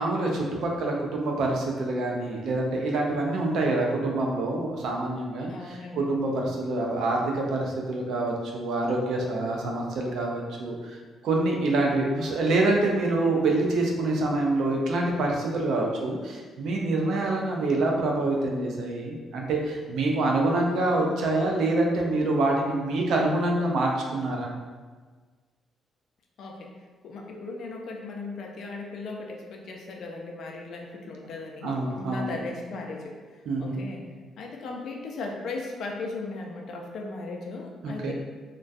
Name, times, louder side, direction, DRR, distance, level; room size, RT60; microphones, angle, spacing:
voice 1, 0.0-11.0 11.2-24.5 31.6-32.3 33.5-33.8 37.8-38.1, right 2 dB, 75° right, 0 dB, 0.4 m, -26 dB
voice 2, 5.5-6.1 6.3-6.5 26.4-26.7 27.0-33.2 33.6-34.0 34.4-38.1, left 3 dB, 70° left, 1 dB, 0.4 m, -37 dB
2.5 x 2.2 x 2.2 m, 1.4 s
cardioid pair, 90°, 0 cm